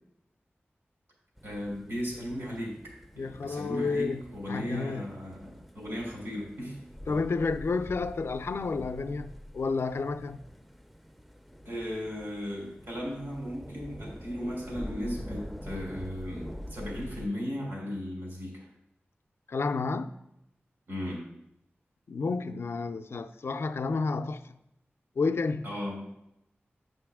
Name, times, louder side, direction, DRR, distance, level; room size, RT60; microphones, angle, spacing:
sound 1, 1.4-17.3, equal, ahead, 0.4 m, -45 dB
voice 1, 1.4-6.8 7.1-7.2 11.6-18.7 20.9-21.3 25.6-26.0, equal, 90° right, 3.0 m, -36 dB
voice 2, 3.2-4.2 4.5-5.1 7.1-10.4 19.5-20.1 22.1-24.5 25.2-25.7, left 4 dB, 75° left, 0.4 m, -30 dB
8.4 x 5.4 x 3.5 m
wide cardioid pair, 90°, 4 cm